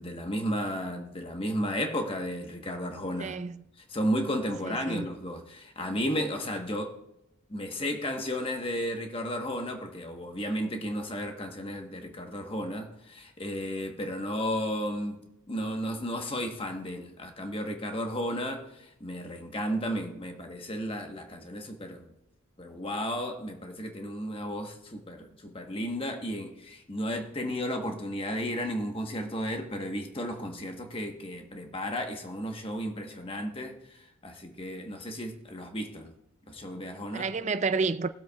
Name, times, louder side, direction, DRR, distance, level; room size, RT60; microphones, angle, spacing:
voice 1, 0.0-3.4 3.9-6.9 7.5-22.1 22.6-36.1 36.5-37.3, equal, 25° left, 1.2 m, -33 dB
voice 2, 3.2-3.6 4.6-5.1 37.1-38.1, right 4 dB, 35° right, 0.4 m, -30 dB
20.0 x 7.7 x 2.4 m
head